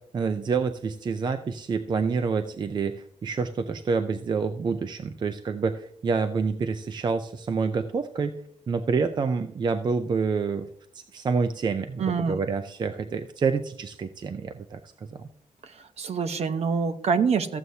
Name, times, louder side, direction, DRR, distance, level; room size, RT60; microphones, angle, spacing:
voice 1, 0.0-8.4 8.7-10.7 10.9-14.8 15.1-15.3, right 5 dB, 35° right, 9 dB, 0.5 m, -28 dB
voice 2, 12.0-12.4 15.6-15.7 16.0-17.6, right 5 dB, 50° right, 9 dB, 0.9 m, -25 dB
14.0 x 7.8 x 2.7 m, 0.67 s
wide cardioid pair, 170°, 13 cm